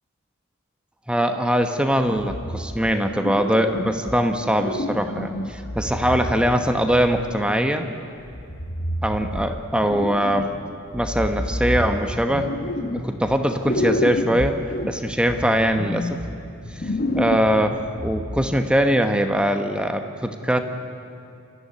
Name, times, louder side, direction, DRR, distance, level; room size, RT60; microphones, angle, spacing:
voice 1, 1.1-7.9 9.0-10.5 10.9-12.5 12.8-14.6 14.9-16.2 17.1-20.6, equal, 5° right, 6 dB, 1.1 m, -22 dB
sound 1, 2.2-3.0 3.2-4.2 4.6-7.4 8.3-10.6 10.9-13.4 13.6-18.6, left 1 dB, 45° left, 1.2 m, -29 dB
28.0 x 14.5 x 9.8 m, 2.6 s
head